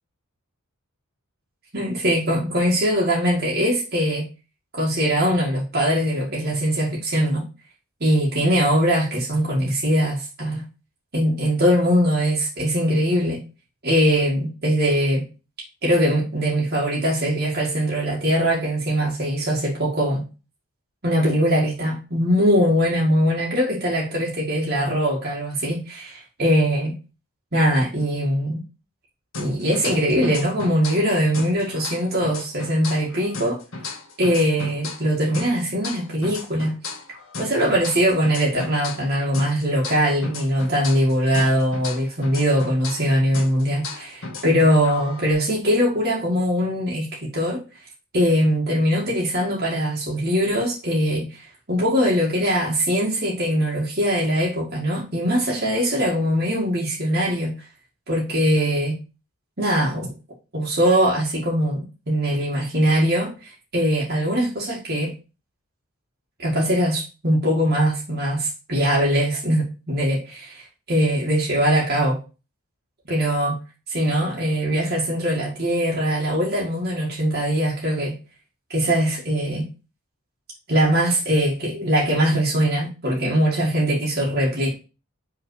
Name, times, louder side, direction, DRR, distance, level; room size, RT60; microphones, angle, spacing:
voice 1, 1.7-4.3 4.8-7.4 8.0-10.6 11.1-13.4 13.8-15.2 15.8-20.2 21.0-27.0 27.5-28.6 29.4-33.6 34.2-36.8 37.4-47.1 47.3-47.6 48.1-57.6 58.1-59.0 59.6-60.1 60.5-65.1 66.4-72.2 73.1-73.6 73.9-78.2 78.7-79.7 80.7-84.7, equal, 45° right, -5 dB, 1.9 m, -21 dB
sound 1, 29.3-31.1 31.3-35.1 35.3-39.1 39.3-43.1 43.3-45.3, left 3 dB, 65° left, 1.6 m, -35 dB
5.5 x 3.8 x 4.7 m, 0.31 s
head